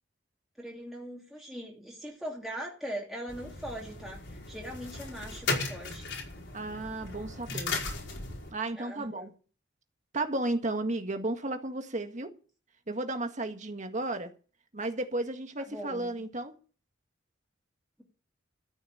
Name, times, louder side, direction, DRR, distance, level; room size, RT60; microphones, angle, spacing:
voice 1, 0.6-6.1 8.8-9.3 15.7-16.1, equal, ahead, 2.6 m, -41 dB
sound 1, 3.3-8.5, left 3 dB, 75° left, 5.1 m, -36 dB
voice 2, 6.5-7.7 8.5-9.3 10.1-12.3 12.9-14.3 14.7-16.6, right 2 dB, 40° right, 1.8 m, -33 dB
14.0 x 6.5 x 9.1 m
head